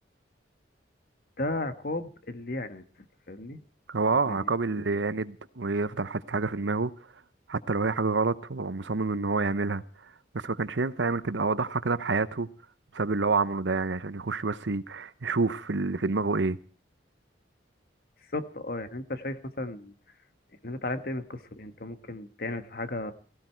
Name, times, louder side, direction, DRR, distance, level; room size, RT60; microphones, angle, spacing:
voice 1, 1.4-2.8 3.3-3.6 4.2-4.9 18.3-19.9 20.6-23.1, left 2 dB, 55° left, 1.5 m, -35 dB
voice 2, 3.9-6.9 7.5-9.8 10.3-12.5 12.9-16.6, right 3 dB, 80° right, 0.9 m, -28 dB
17.0 x 16.0 x 4.6 m
head